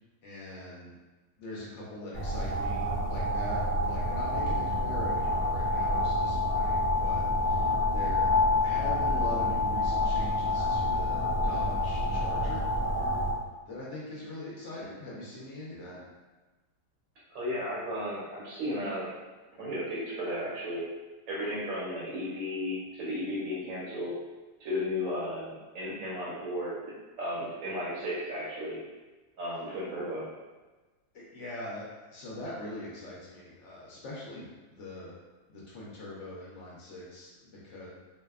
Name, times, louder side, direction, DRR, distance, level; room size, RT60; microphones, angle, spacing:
voice 1, 0.2-1.0 1.4-8.3 8.6-12.6 13.7-16.0 31.1-35.1 35.5-37.9, left 1 dB, 65° left, -6 dB, 0.7 m, -42 dB
sound 1, 2.1-13.3, left 1 dB, 90° right, 1.2 m, -28 dB
voice 2, 17.3-19.1 19.6-20.9 21.3-24.2 24.6-28.8 29.4-30.3, left 1 dB, 65° right, -7 dB, 0.9 m, -34 dB
2.7 x 2.2 x 2.2 m, 1.2 s
omnidirectional pair, 1.7 m